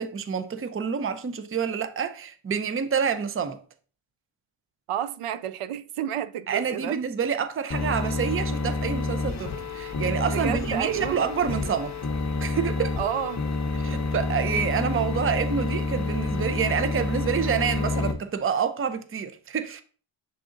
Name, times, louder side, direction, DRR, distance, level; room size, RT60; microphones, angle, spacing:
voice 1, 0.0-3.6 6.5-12.0 12.4-13.0 13.8-19.8, right 7 dB, 30° right, 0.4 m, -28 dB
voice 2, 4.9-7.0 10.3-11.2 13.0-13.4, right 10 dB, 85° right, 0.6 m, -30 dB
sound 1, 7.7-18.1, left 3 dB, 35° left, 0.7 m, -28 dB
6.9 x 3.7 x 3.7 m
wide cardioid pair, 160°, 50 cm